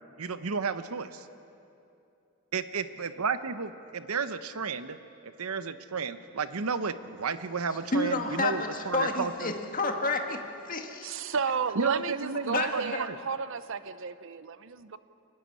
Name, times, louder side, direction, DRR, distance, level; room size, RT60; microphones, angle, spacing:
voice 1, 0.2-1.3 2.5-5.0 5.2-9.5 11.8-13.2, right 5 dB, 85° right, 11 dB, 0.9 m, -32 dB
voice 2, 7.9-11.1 12.5-12.7, left 3 dB, 40° left, 4 dB, 1.7 m, -30 dB
voice 3, 11.0-15.0, right 5 dB, 60° right, 13 dB, 0.7 m, -33 dB
29.5 x 9.9 x 9.7 m, 2.7 s
head